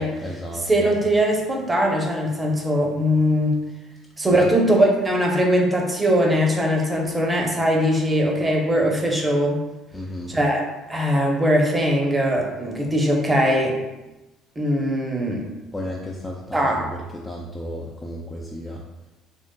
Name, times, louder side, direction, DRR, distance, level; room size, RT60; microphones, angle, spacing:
voice 1, 0.0-1.0 4.3-4.5 9.9-10.4 15.7-18.8, equal, 15° left, -2 dB, 0.4 m, -33 dB
voice 2, 0.7-3.6 4.2-9.6 10.3-13.8 14.6-15.5 16.5-16.8, equal, 20° right, -1 dB, 0.8 m, -21 dB
3.7 x 2.5 x 2.2 m, 1.0 s
hypercardioid pair, 60°, 0 cm